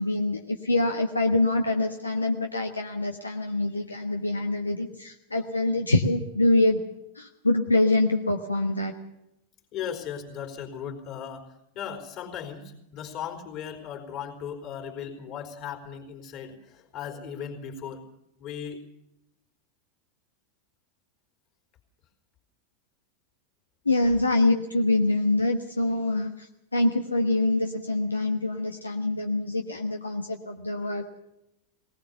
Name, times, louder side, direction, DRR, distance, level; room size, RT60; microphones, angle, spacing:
voice 1, 0.0-6.8 7.2-8.9 23.8-26.5 26.7-31.0, left 2 dB, 80° left, 4 dB, 1.3 m, -25 dB
voice 2, 9.7-18.0 18.4-18.8, left 8 dB, 40° left, 3 dB, 4.2 m, -37 dB
20.0 x 19.0 x 7.0 m, 0.87 s
figure-of-eight pair, 90°, 0 cm